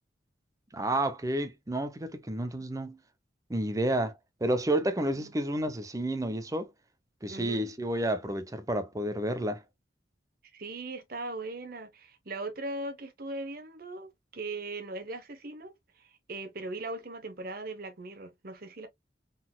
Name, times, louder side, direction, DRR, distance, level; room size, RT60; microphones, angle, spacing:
voice 1, 0.7-3.0 3.5-4.1 4.4-6.7 7.2-9.6, right 1 dB, 20° right, 0.6 m, -30 dB
voice 2, 7.3-7.7 10.5-18.9, right 2 dB, 50° right, 1.0 m, -39 dB
4.0 x 3.9 x 2.3 m
head